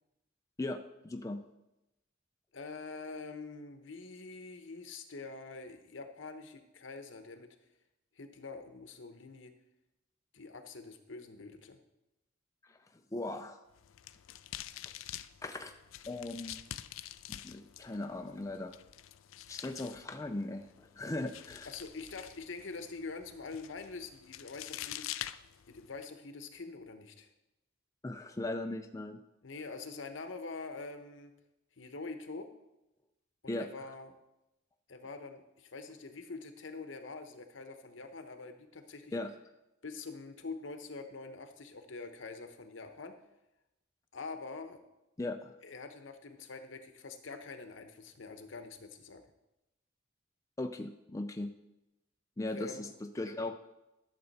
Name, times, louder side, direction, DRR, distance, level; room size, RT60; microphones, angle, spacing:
voice 1, 0.6-1.4 12.6-12.8 13.1-13.6 15.4-15.7 16.1-16.6 17.3-18.8 19.5-21.7 28.0-29.2 33.5-33.7 39.1-39.3 45.2-45.5 50.6-51.5 52.4-53.6, left 2 dB, 15° left, 5 dB, 0.4 m, -38 dB
voice 2, 2.5-7.5 8.2-9.5 10.3-11.8 21.7-25.4 25.7-27.3 29.4-31.3 31.8-32.5 33.4-34.1 34.9-39.1 39.8-43.2 44.1-44.8 45.6-49.2 52.4-52.9, left 3 dB, 70° left, 7 dB, 1.0 m, -45 dB
sound 1, 13.7-26.0, left 12 dB, 90° left, 0.4 m, -47 dB
12.0 x 6.9 x 4.1 m, 0.93 s
head